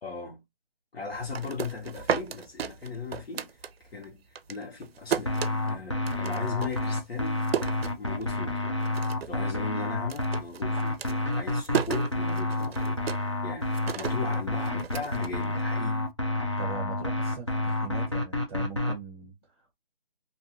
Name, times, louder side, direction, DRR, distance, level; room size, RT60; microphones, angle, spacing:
voice 1, 0.0-0.4 0.9-4.2 4.5-7.4 7.8-16.1, left 4 dB, 90° left, 1.1 m, -38 dB
sound 1, 1.1-4.1 4.3-8.5 8.8-9.4 9.7-15.9, right 8 dB, 90° right, 0.5 m, -34 dB
sound 2, 5.3-19.0, left 2 dB, 30° left, 0.4 m, -29 dB
voice 2, 16.6-19.7, right 5 dB, 25° right, 1.0 m, -41 dB
2.5 x 2.4 x 2.9 m
hypercardioid pair, 170°, 30 cm